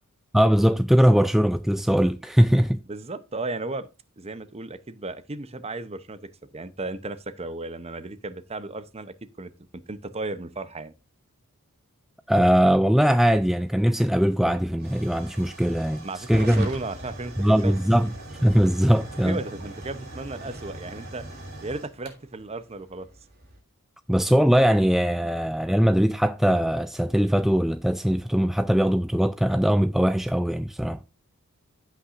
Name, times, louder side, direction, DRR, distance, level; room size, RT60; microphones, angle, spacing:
voice 1, 0.3-2.8 12.3-16.7 17.4-18.1 18.4-19.4 24.1-31.0, equal, ahead, 0.3 m, -21 dB
voice 2, 2.9-3.9 4.2-10.9 16.0-17.8 19.2-21.3 21.6-23.1, right 2 dB, 30° right, 0.7 m, -35 dB
Hiss / Fire / Tick, 13.2-23.6, right 1 dB, 45° right, 4.4 m, -41 dB
15.5 x 5.8 x 2.5 m
head